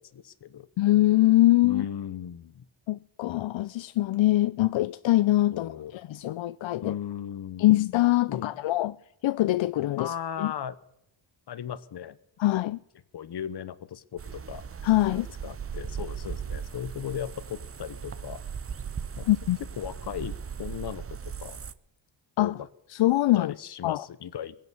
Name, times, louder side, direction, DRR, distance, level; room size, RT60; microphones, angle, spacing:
voice 1, 0.0-0.7 1.6-2.6 5.5-5.9 6.8-7.7 8.3-8.5 10.0-10.7 11.5-12.2 13.1-14.6 15.4-18.4 19.2-19.3 19.8-21.6 22.4-22.7 23.3-24.6, left 9 dB, 60° left, 1.1 m, -37 dB
voice 2, 0.8-1.8 2.9-7.0 7.6-9.0 9.2-10.5 12.4-12.8 14.8-15.3 19.3-19.6 22.4-22.6 22.9-23.5 23.8-24.1, left 16 dB, 80° left, 0.5 m, -23 dB
sound 1, 14.2-21.7, right 7 dB, 30° right, 0.6 m, -38 dB
22.0 x 9.0 x 6.9 m
wide cardioid pair, 155°, 46 cm